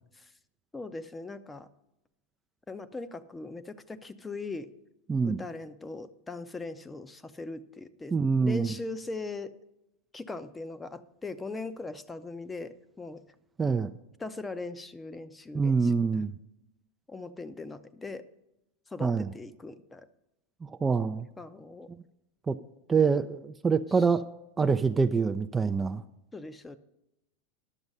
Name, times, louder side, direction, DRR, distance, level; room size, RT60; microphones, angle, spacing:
voice 1, 0.7-1.7 2.7-4.7 5.2-9.5 10.1-13.2 14.2-16.2 17.1-18.2 18.9-20.1 21.4-21.9 23.9-24.1 24.6-24.8 26.3-26.8, left 3 dB, 15° left, 12 dB, 0.7 m, -40 dB
voice 2, 5.1-5.4 8.1-8.7 13.6-13.9 15.5-16.3 19.0-19.3 20.6-21.3 22.5-22.6 22.9-24.2 24.6-26.0, right 5 dB, 20° right, 8 dB, 0.4 m, -25 dB
11.0 x 7.0 x 5.4 m, 0.89 s
hypercardioid pair, 90°, 0 cm